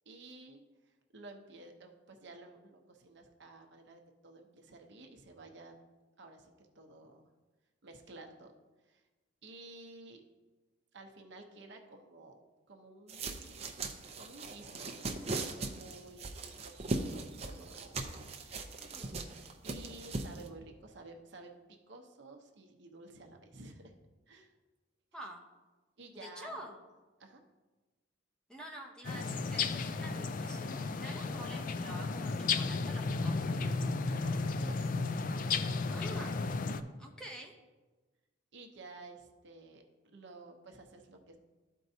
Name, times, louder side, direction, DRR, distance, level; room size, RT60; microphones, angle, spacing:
voice 1, 0.1-0.6 1.1-5.7 6.2-7.3 7.8-8.5 8.9-9.0 9.4-10.2 10.9-12.4 12.7-13.7 14.2-15.0 15.6-16.3 16.6-18.1 19.6-21.5 21.9-23.9 24.3-24.5 26.0-26.6 27.2-27.4 34.1-35.1 38.5-39.8 40.1-41.4, right 2 dB, 60° right, 3 dB, 0.8 m, -52 dB
sound 1, 13.1-20.5, right 3 dB, 30° right, 0.5 m, -39 dB
voice 2, 18.8-19.1 25.1-25.4 26.1-26.8 28.5-33.9 35.9-36.4 37.0-37.5, right 1 dB, 5° left, 0 dB, 0.7 m, -48 dB
sound 2, 29.0-36.8, left 4 dB, 40° left, 0.3 m, -34 dB
12.5 x 4.6 x 2.7 m, 1.2 s
head